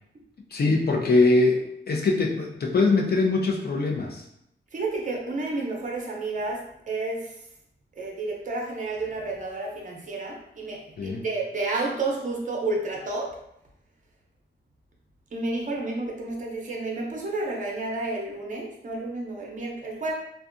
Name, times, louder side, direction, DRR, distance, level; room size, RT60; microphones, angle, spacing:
voice 1, 0.5-4.3 11.0-11.2, left 3 dB, 55° left, 0 dB, 0.4 m, -22 dB
voice 2, 4.7-6.6 6.9-7.3 8.0-13.3 15.3-20.1, right 2 dB, 40° right, -1 dB, 0.5 m, -30 dB
2.6 x 2.2 x 2.4 m, 0.79 s
wide cardioid pair, 105°, 19 cm